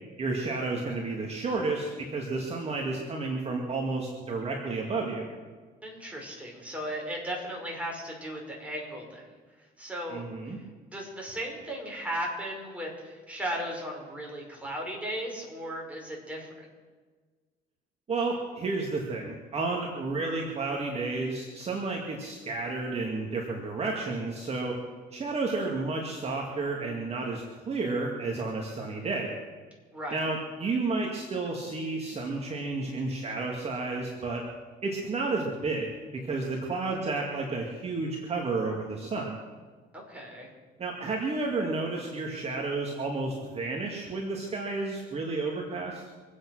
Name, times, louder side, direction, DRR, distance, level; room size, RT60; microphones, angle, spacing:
voice 1, 0.2-5.3 10.1-10.6 18.1-24.8 25.1-29.4 30.1-34.4 34.8-35.9 36.1-39.4 40.8-46.0, right 3 dB, 35° right, 0 dB, 2.3 m, -31 dB
voice 2, 5.8-9.3 9.8-10.2 10.9-16.7 29.9-30.2 39.9-40.5, equal, 10° right, -1 dB, 5.5 m, -36 dB
25.0 x 8.7 x 6.3 m, 1.4 s
cardioid pair, 110°, 17 cm